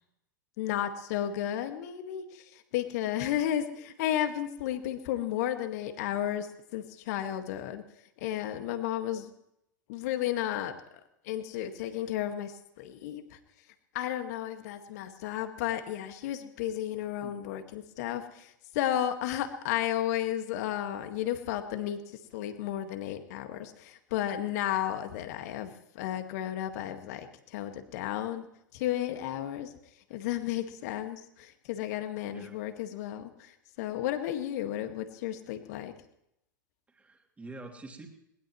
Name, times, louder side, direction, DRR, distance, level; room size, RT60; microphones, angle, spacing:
voice 1, 0.6-6.5 6.7-7.8 8.2-9.3 9.9-10.7 11.2-13.4 13.9-28.5 28.7-29.7 30.1-35.9, left 11 dB, 55° left, 8 dB, 1.9 m, -33 dB
voice 2, 32.3-32.6 36.9-38.1, right 2 dB, 15° right, 2 dB, 3.0 m, -46 dB
21.0 x 20.0 x 3.2 m, 0.78 s
figure-of-eight pair, 90°, 10 cm